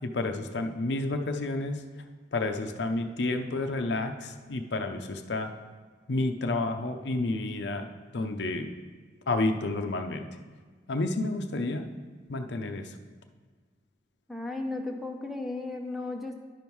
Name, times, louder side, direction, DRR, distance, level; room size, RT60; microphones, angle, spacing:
voice 1, 0.0-1.8 2.3-5.5 6.1-8.7 9.3-10.3 10.9-11.9 12.3-12.9, left 2 dB, 70° left, 6 dB, 0.6 m, -30 dB
voice 2, 14.3-16.3, left 2 dB, ahead, 2 dB, 0.6 m, -35 dB
10.5 x 5.4 x 4.6 m, 1.5 s
head